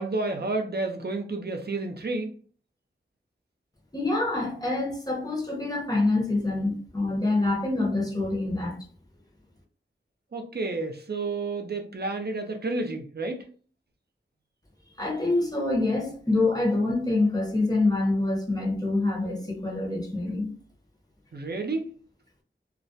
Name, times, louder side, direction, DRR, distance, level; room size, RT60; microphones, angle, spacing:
voice 1, 0.0-2.3 10.3-13.5 21.3-21.9, right 3 dB, 50° right, 0.6 m, -30 dB
voice 2, 3.9-8.8 15.0-20.5, left 2 dB, 20° left, 0.8 m, -26 dB
2.3 x 2.1 x 2.6 m
wide cardioid pair, 45°, 21 cm